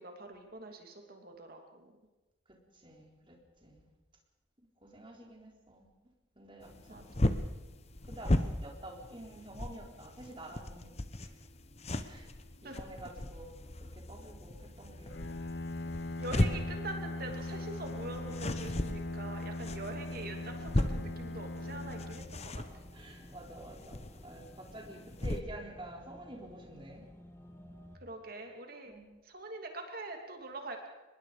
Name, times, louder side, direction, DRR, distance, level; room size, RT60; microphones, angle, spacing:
voice 1, 0.0-1.9 6.9-7.3 12.6-12.8 16.2-22.5 28.0-28.9 29.3-30.9, right 2 dB, 50° right, 3 dB, 2.8 m, -44 dB
voice 2, 2.7-3.9 4.8-5.9 6.4-7.1 8.1-11.3 12.0-12.3 12.6-13.5 13.9-15.2 22.9-27.1 28.9-29.0, right 1 dB, 25° right, 0 dB, 3.9 m, -49 dB
sound 1, 6.6-25.4, left 1 dB, 30° left, 1.0 m, -37 dB
Bowed string instrument, 15.1-23.1, left 2 dB, 60° left, 0.8 m, -40 dB
sound 2, 19.9-28.0, equal, 15° left, 1.5 m, -55 dB
24.5 x 21.0 x 5.1 m, 1.1 s
head